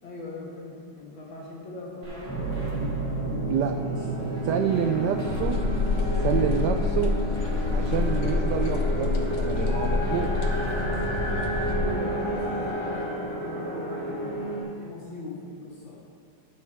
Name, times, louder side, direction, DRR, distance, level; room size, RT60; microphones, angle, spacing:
voice 1, 0.0-3.6 11.8-15.9, left 2 dB, 65° left, -6 dB, 2.6 m, -40 dB
sound 1, 2.0-12.7, right 1 dB, 50° right, 2.5 m, -42 dB
sound 2, 2.3-14.6, right 2 dB, 5° left, 2.6 m, -30 dB
voice 2, 4.4-5.6 5.9-7.2 7.7-10.3, right 8 dB, 80° right, 6 dB, 0.9 m, -28 dB
sound 3, 5.3-11.9, left 4 dB, 85° left, 1.9 m, -27 dB
13.0 x 7.8 x 3.5 m, 2.2 s
omnidirectional pair, 2.3 m